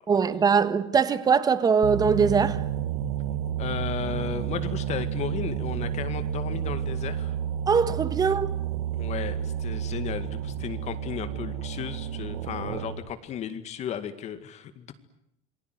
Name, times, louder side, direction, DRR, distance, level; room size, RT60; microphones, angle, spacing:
voice 1, 0.1-2.6 7.7-8.5, right 6 dB, 20° right, 1.5 m, -22 dB
sound 1, 1.8-13.1, right 10 dB, 85° right, 1.6 m, -31 dB
voice 2, 3.6-7.4 8.9-14.9, left 9 dB, 40° left, 2.1 m, -35 dB
28.0 x 21.5 x 9.5 m
cardioid pair, 140°, 18 cm